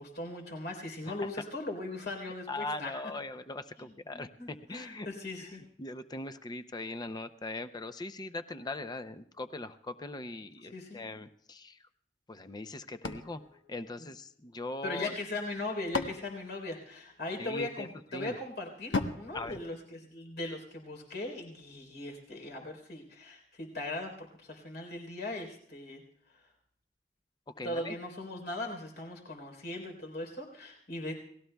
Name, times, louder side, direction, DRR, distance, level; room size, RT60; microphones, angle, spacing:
voice 1, 0.0-2.9 4.1-5.6 10.7-11.0 14.8-26.0 27.6-31.2, left 2 dB, 65° left, 4 dB, 3.7 m, -39 dB
voice 2, 2.2-5.1 5.4-11.9 12.3-13.4 13.7-15.2 17.4-18.4 19.3-19.6 27.5-28.0, left 2 dB, 25° left, 11 dB, 0.5 m, -41 dB
sound 1, 13.0-14.6 15.4-17.4 18.9-20.5, left 3 dB, 90° left, 1.1 m, -38 dB
29.5 x 19.0 x 2.3 m, 0.65 s
head